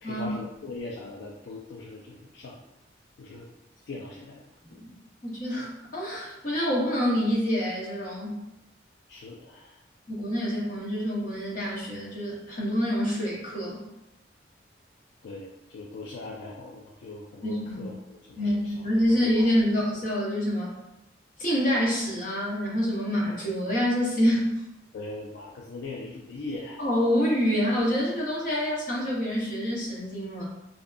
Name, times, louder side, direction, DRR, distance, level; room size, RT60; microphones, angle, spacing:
voice 1, 0.0-2.6 3.2-3.5 3.9-4.4 4.7-4.8 9.1-9.8 15.2-19.5 24.9-26.8, left 2 dB, 70° left, -2 dB, 0.3 m, -40 dB
voice 2, 5.2-8.4 10.1-13.8 17.4-17.8 18.4-20.7 21.4-24.5 26.8-30.4, equal, 45° left, -4 dB, 0.7 m, -27 dB
2.6 x 2.4 x 2.2 m, 0.90 s
head